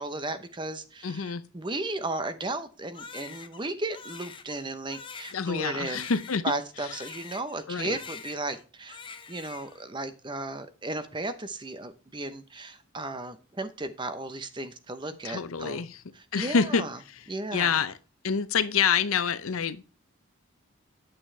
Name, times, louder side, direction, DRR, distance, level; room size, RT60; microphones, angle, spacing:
voice 1, 0.0-6.1 6.4-9.0 9.3-15.8 16.2-17.0 17.3-17.8, right 2 dB, 20° right, 0.8 m, -35 dB
voice 2, 1.0-1.4 5.3-6.4 7.7-8.0 15.2-16.0 16.3-17.2 17.5-17.9 18.2-19.9, left 6 dB, 85° left, 0.7 m, -27 dB
Crying sobbing, 2.9-7.6 7.9-8.6 8.9-9.8, left 5 dB, 25° left, 0.7 m, -44 dB
8.8 x 7.1 x 3.3 m
head